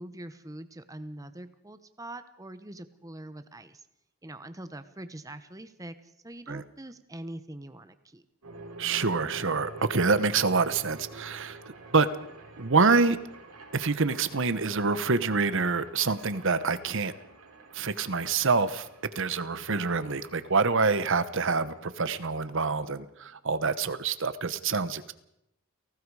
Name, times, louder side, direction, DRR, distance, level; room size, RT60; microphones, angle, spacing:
voice 1, 0.0-3.9 4.2-8.2, right 1 dB, 15° right, 11 dB, 1.0 m, -43 dB
sound 1, 8.4-23.4, right 2 dB, 85° right, 5.2 m, -48 dB
voice 2, 8.8-11.6 11.9-12.2 12.6-13.2 13.7-17.1 17.7-18.9 19.1-25.1, right 4 dB, 55° right, 14 dB, 1.1 m, -26 dB
30.0 x 18.5 x 4.9 m, 0.80 s
head